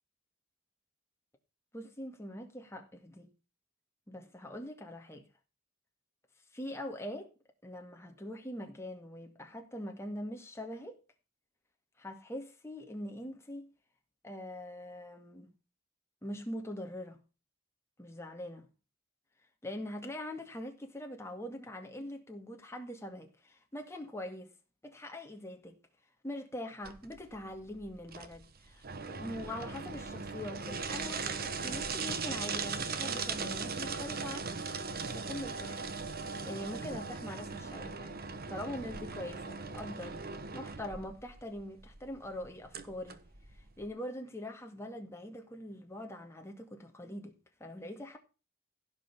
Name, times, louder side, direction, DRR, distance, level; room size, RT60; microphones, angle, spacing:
voice 1, 1.7-3.3 4.1-5.3 6.5-7.3 7.6-11.0 12.0-13.7 14.2-15.5 16.2-17.2 18.0-18.7 19.6-24.5 24.8-25.8 26.2-34.6 35.0-35.9 36.4-38.2 38.5-43.2 43.8-48.2, left 1 dB, 15° left, 2.2 m, -43 dB
sound 1, 26.8-43.9, right 4 dB, 50° right, 1.2 m, -39 dB
15.5 x 5.4 x 5.4 m
head